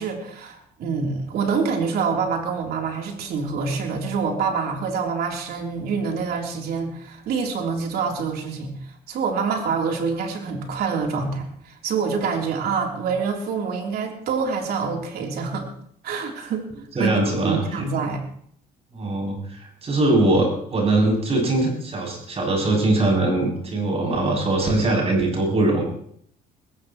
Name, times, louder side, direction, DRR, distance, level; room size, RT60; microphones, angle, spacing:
voice 1, 0.0-15.7 16.0-16.7 17.0-18.3, right 5 dB, 65° right, 1 dB, 3.5 m, -26 dB
voice 2, 16.9-17.6 18.9-25.8, right 2 dB, 35° right, 0 dB, 7.8 m, -21 dB
20.5 x 16.0 x 3.1 m, 0.64 s
cardioid pair, 110°, 17 cm